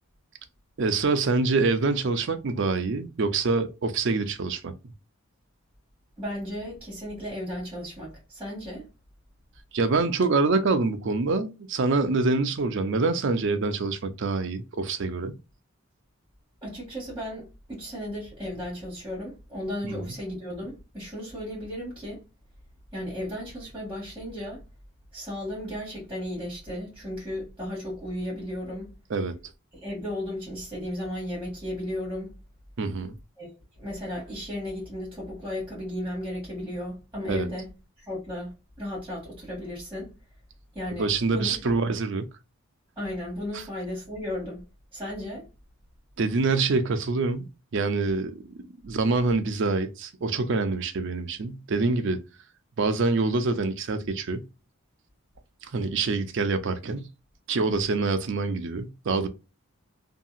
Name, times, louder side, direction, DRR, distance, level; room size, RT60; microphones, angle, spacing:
voice 1, 0.8-4.7 9.7-15.4 19.8-19.9 29.1-29.3 32.8-33.2 37.3-37.5 41.0-42.3 46.2-48.4 48.7-52.2 52.8-54.4 55.6-57.1 57.5-59.3, right 3 dB, 55° right, 0.4 m, -25 dB
voice 2, 6.2-8.9 16.6-22.2 22.9-24.6 25.1-28.9 29.7-32.3 33.4-37.7 38.0-40.1 40.7-41.8 42.9-44.6 44.9-45.5, left 1 dB, 5° right, 1.6 m, -35 dB
2.7 x 2.7 x 2.4 m
head